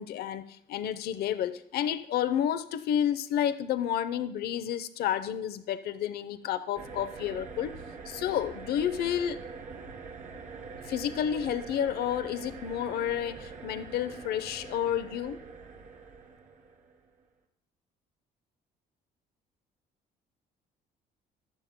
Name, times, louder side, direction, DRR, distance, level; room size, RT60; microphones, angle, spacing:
voice 1, 0.0-9.4 10.8-15.4, left 10 dB, 70° left, 13 dB, 0.7 m, -30 dB
sound 1, 6.7-17.0, right 4 dB, 50° right, 2.0 m, -44 dB
15.0 x 11.5 x 2.2 m, 0.73 s
cardioid pair, 110°, 17 cm